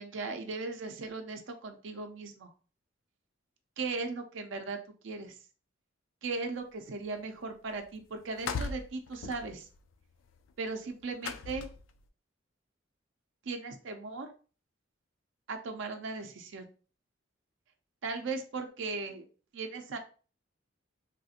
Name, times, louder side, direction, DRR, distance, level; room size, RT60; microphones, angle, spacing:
voice 1, 0.0-2.5 3.8-4.8 5.0-5.3 6.2-9.7 10.6-11.7 13.4-14.3 15.5-16.7 18.0-19.3 19.5-20.0, right 3 dB, 70° right, 5 dB, 0.5 m, -37 dB
sound 1, 7.4-7.5 7.7-8.0 8.2-12.0, left 4 dB, 80° left, 0.3 m, -39 dB
3.3 x 2.4 x 2.7 m, 0.37 s
head